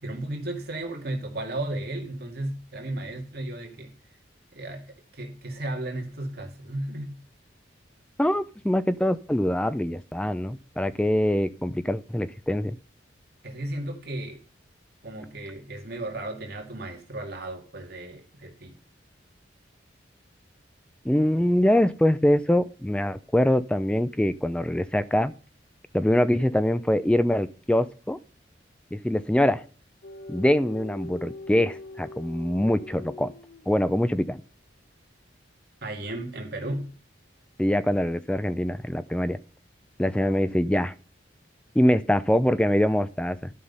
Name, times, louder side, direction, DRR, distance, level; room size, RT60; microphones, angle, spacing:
voice 1, 0.0-3.9 4.5-7.2 13.4-14.4 15.0-18.7 35.8-36.9, right 1 dB, 60° right, 2.2 m, -34 dB
voice 2, 8.2-12.8 21.0-25.3 25.9-28.2 28.9-29.6 30.3-33.3 33.7-34.4 37.6-39.4 40.0-40.9 41.8-43.5, left 1 dB, 5° left, 0.4 m, -24 dB
sound 1, 30.0-34.1, left 2 dB, 70° left, 0.9 m, -42 dB
11.5 x 5.7 x 5.5 m
head